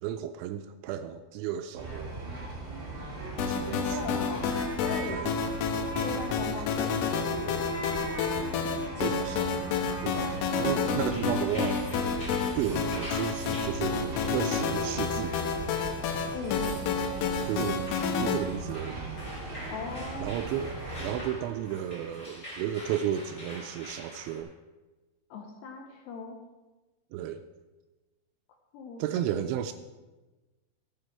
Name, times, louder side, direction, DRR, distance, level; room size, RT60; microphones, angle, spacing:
voice 1, 0.0-2.2 3.5-4.2 5.1-5.4 5.7-5.8 9.0-9.6 10.0-11.8 12.6-15.6 17.4-19.3 20.2-24.5 27.1-27.4 29.0-29.7, right 10 dB, 85° right, 8 dB, 2.8 m, -33 dB
sound 1, 1.8-21.2, right 2 dB, 55° right, 1.3 m, -39 dB
sound 2, 3.4-18.4, left 5 dB, 90° left, 3.5 m, -30 dB
voice 2, 3.7-4.5 4.8-5.2 6.0-7.7 16.3-16.8 19.7-20.3 25.3-26.4 28.7-29.2, left 4 dB, 75° left, 3 dB, 2.7 m, -39 dB
sound 3, 11.1-24.4, equal, 20° left, 2.9 m, -45 dB
13.5 x 8.7 x 4.4 m, 1.2 s
omnidirectional pair, 5.6 m